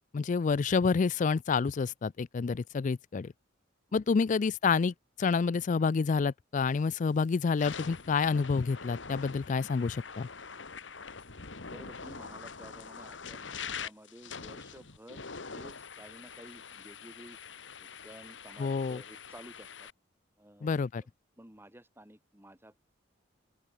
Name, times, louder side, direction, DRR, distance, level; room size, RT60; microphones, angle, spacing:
voice 1, 0.0-3.3 3.9-10.3 18.6-19.0 20.6-21.0, left 5 dB, 40° left, 0.4 m, -28 dB
sound 1, 6.7-7.0 7.4-19.9, left 5 dB, 75° left, 1.9 m, -44 dB
voice 2, 11.7-17.4 17.8-19.9 20.4-20.7 20.9-21.1 21.4-22.8, right 1 dB, 10° right, 3.3 m, -53 dB
open air
head